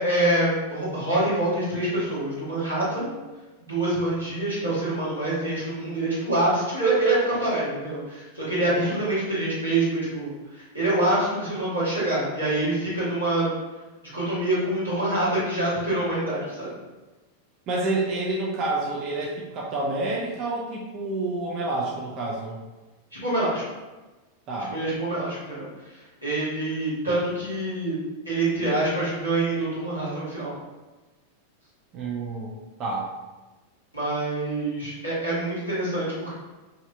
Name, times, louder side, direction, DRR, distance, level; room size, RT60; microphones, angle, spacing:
voice 1, 0.0-3.1 3.6-13.5 14.1-16.7 23.1-23.6 24.7-25.7 25.9-28.0 28.2-30.5 33.9-36.3, right 2 dB, 90° right, -11 dB, 1.4 m, -26 dB
voice 2, 8.6-9.0 17.7-22.6 24.5-24.8 31.9-32.5 32.8-33.1, right 2 dB, 35° right, -4 dB, 0.5 m, -29 dB
3.1 x 2.7 x 2.5 m, 1.2 s
figure-of-eight pair, 90°, 0 cm